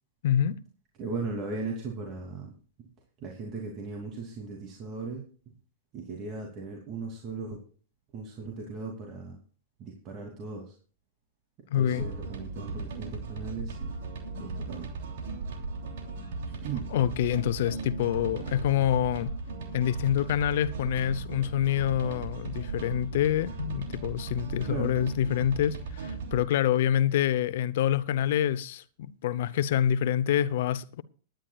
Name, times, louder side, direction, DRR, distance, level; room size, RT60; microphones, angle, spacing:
voice 1, 0.2-0.6 11.7-12.0 16.9-19.3 19.7-31.0, left 10 dB, 65° left, 0.8 m, -26 dB
voice 2, 1.0-2.5 3.2-5.2 5.9-7.6 8.1-9.4 9.8-10.7 11.8-14.0 14.4-14.9 16.6-16.9 24.6-24.9, right 4 dB, 40° right, 2.8 m, -37 dB
sound 1, 11.9-26.4, right 3 dB, 70° right, 3.0 m, -37 dB
21.5 x 10.5 x 2.4 m
hypercardioid pair, 110°, 0 cm